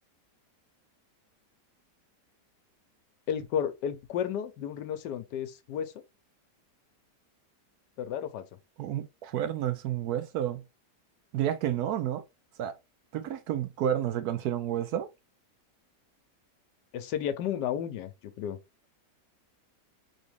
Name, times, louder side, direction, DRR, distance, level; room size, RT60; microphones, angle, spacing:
voice 1, 3.3-5.9 8.0-8.4 16.9-18.6, left 9 dB, 80° left, 1.3 m, -32 dB
voice 2, 8.8-10.6 11.3-12.2 12.6-12.8 13.1-15.1, right 10 dB, 70° right, 1.0 m, -30 dB
3.7 x 3.5 x 3.4 m
omnidirectional pair, 1.8 m